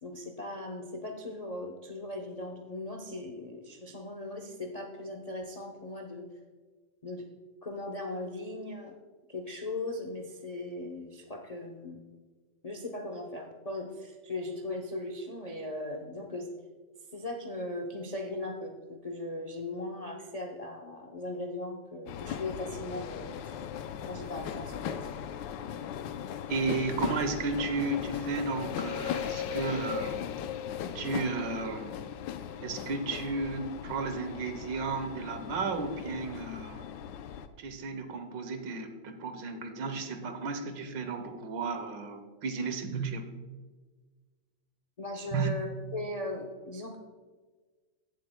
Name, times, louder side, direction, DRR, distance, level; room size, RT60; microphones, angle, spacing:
voice 1, 0.0-6.3 7.0-7.3 7.6-8.9 9.3-12.0 12.6-16.5 17.1-23.5 24.1-25.0 45.0-47.0, left 2 dB, 55° left, 2 dB, 0.4 m, -38 dB
sound 1, 22.1-37.5, left 9 dB, 80° left, 1.2 m, -38 dB
voice 2, 26.5-30.3 30.9-32.0 32.6-36.9 37.6-43.3 45.3-45.5, right 3 dB, 80° right, 7 dB, 1.6 m, -33 dB
16.0 x 7.6 x 2.2 m, 1.4 s
omnidirectional pair, 2.0 m